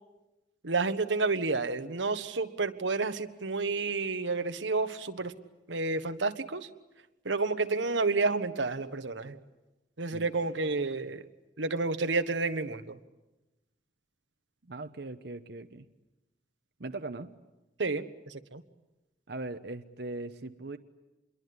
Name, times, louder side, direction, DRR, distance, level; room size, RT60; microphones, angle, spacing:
voice 1, 0.6-5.3 5.7-6.7 7.2-9.4 10.0-11.2 11.6-13.0 17.8-18.6, right 3 dB, 90° right, 9 dB, 1.4 m, -30 dB
voice 2, 14.6-15.9 16.8-17.3 19.3-20.8, right 2 dB, 60° right, 8 dB, 1.0 m, -39 dB
27.0 x 22.5 x 9.6 m, 1.0 s
head